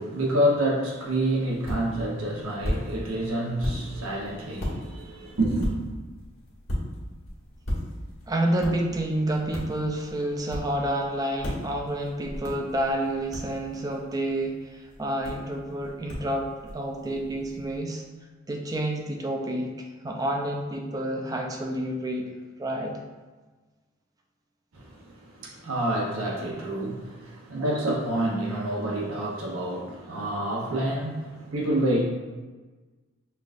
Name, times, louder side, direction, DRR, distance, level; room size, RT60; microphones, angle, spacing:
voice 1, 0.0-5.8 24.7-32.0, right 1 dB, 85° right, -2 dB, 0.8 m, -28 dB
sound 1, 1.0-17.8, equal, 75° left, 1.3 m, -37 dB
voice 2, 8.3-18.0 18.5-22.3 22.6-23.0, right 1 dB, 20° right, 2 dB, 0.4 m, -29 dB
5.5 x 2.4 x 2.5 m, 1.3 s
head